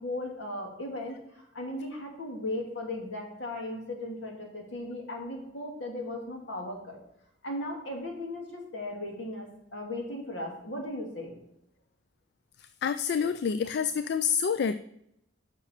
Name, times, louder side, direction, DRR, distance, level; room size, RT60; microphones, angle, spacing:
voice 1, 0.0-7.0 7.4-11.3, left 1 dB, 80° left, 1 dB, 2.3 m, -37 dB
voice 2, 12.8-14.7, left 7 dB, 60° left, 12 dB, 0.3 m, -27 dB
9.8 x 6.1 x 4.3 m, 0.78 s
head